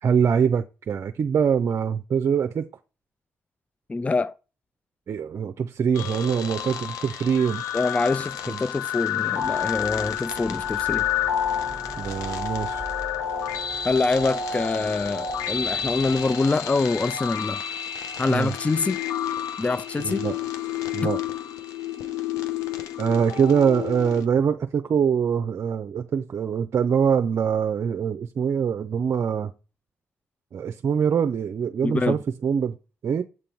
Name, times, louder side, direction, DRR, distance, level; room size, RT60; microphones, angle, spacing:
voice 1, 0.0-2.7 5.1-7.6 8.5-8.6 12.0-12.8 18.3-18.5 20.0-20.4 20.9-21.2 23.0-29.5 30.5-32.8 33.0-33.2, right 7 dB, 55° right, 0.5 m, -23 dB
voice 2, 3.9-4.3 7.7-11.1 13.8-17.6 18.2-19.0 19.6-20.3 21.0-21.1 31.8-32.2, left 3 dB, 25° left, 0.3 m, -25 dB
sound 1, 5.9-24.2, left 9 dB, 80° left, 0.8 m, -30 dB
sound 2, 9.4-16.3, right 3 dB, 5° left, 1.2 m, -42 dB
7.6 x 3.8 x 4.5 m
hypercardioid pair, 45°, 6 cm